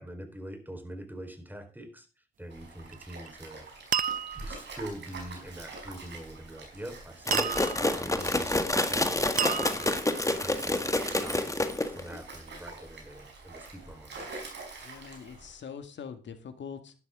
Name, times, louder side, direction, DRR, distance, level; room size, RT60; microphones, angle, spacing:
voice 1, 0.0-3.9 4.3-14.3, right 1 dB, 10° right, 6 dB, 4.3 m, -44 dB
Stream, 2.5-15.6, right 3 dB, 60° right, 4.9 m, -45 dB
sound 1, 2.9-3.3 3.9-4.6 7.3-8.0 9.4-10.2, right 9 dB, 40° right, 0.4 m, -31 dB
sound 2, 7.3-12.1, left 2 dB, 15° left, 1.8 m, -28 dB
voice 2, 14.8-16.9, left 6 dB, 60° left, 8 dB, 2.1 m, -43 dB
12.0 x 11.0 x 3.7 m, 0.34 s
hypercardioid pair, 45°, 21 cm